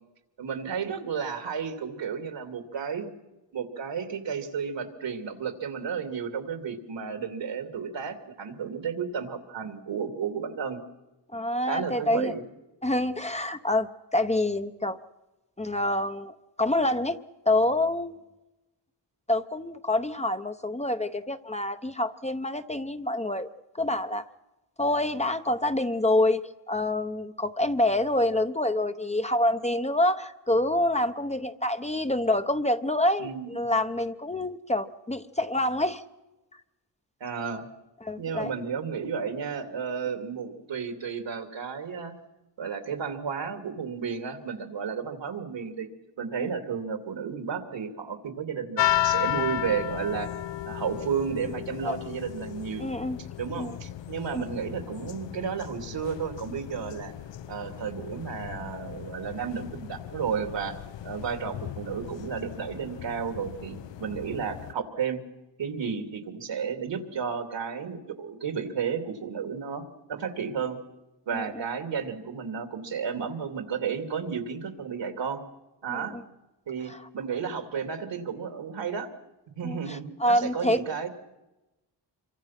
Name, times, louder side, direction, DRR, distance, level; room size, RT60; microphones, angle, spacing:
voice 1, 0.4-3.1 3.5-10.8 11.7-12.4 33.2-33.5 37.2-37.7 38.2-42.1 42.6-45.9 46.2-50.4 50.6-52.9 53.4-57.1 57.5-65.2 65.6-69.8 70.1-70.8 71.3-75.4 75.8-76.2 76.7-79.1 79.6-81.1, right 6 dB, 80° right, 7 dB, 2.8 m, -32 dB
voice 2, 11.3-12.3 12.8-15.0 15.6-17.2 17.5-18.2 19.3-23.5 23.8-24.3 24.8-36.0 38.0-38.5 46.4-46.5 51.8-52.0 52.8-53.2 53.6-53.7 54.3-54.4 71.3-71.6 75.9-76.2 76.9-77.0 79.6-80.8, left 1 dB, 15° left, 9 dB, 0.8 m, -27 dB
sound 1, 48.8-64.7, left 12 dB, 75° left, 0.7 m, -34 dB
26.5 x 24.0 x 5.9 m, 1.0 s
wide cardioid pair, 130°, 43 cm